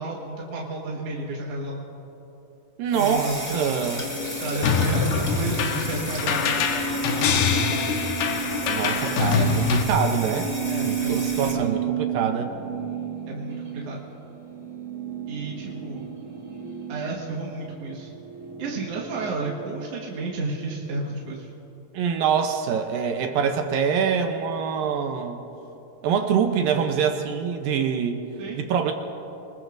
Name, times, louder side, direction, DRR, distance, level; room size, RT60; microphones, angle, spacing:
voice 1, 0.0-1.8 2.9-3.8 4.3-6.7 10.7-11.7 13.3-14.0 15.3-16.1 16.9-18.1 18.6-21.5 28.4-28.6, right 3 dB, 50° right, -3 dB, 2.0 m, -32 dB
voice 2, 2.8-4.1 8.7-10.5 10.8-12.6 21.9-25.4 26.0-28.2 28.5-28.9, right 7 dB, 75° right, 5 dB, 2.3 m, -25 dB
sound 1, 2.9-11.5, left 1 dB, 25° left, 0.9 m, -34 dB
sound 2, 3.8-21.0, right 7 dB, 5° right, 3.2 m, -33 dB
sound 3, 4.6-9.8, left 5 dB, 85° left, 3.0 m, -24 dB
27.0 x 20.5 x 2.6 m, 3.0 s
omnidirectional pair, 4.6 m